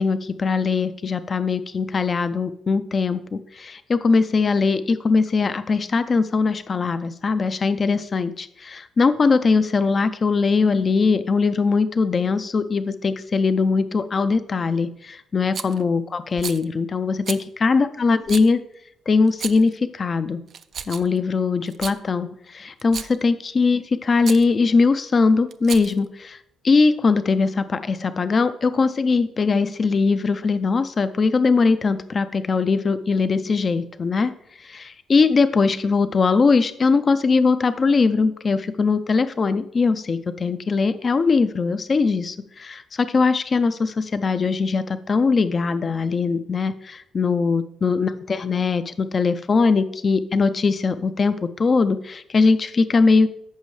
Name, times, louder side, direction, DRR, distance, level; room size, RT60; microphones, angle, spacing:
voice 1, 0.0-18.6 19.1-20.4 20.9-26.4 26.6-34.3 34.6-53.3, left 4 dB, 40° left, 12 dB, 0.5 m, -21 dB
Rattle, 15.5-15.8 16.4-16.6 17.3-17.4 18.3-18.5 19.3-19.7 20.5-21.2 21.7-22.0 22.8-23.2 24.2-24.5 25.5-26.1, right 7 dB, 55° right, 0.4 m, -33 dB
13.5 x 5.4 x 3.2 m, 0.74 s
cardioid pair, 90°, 0 cm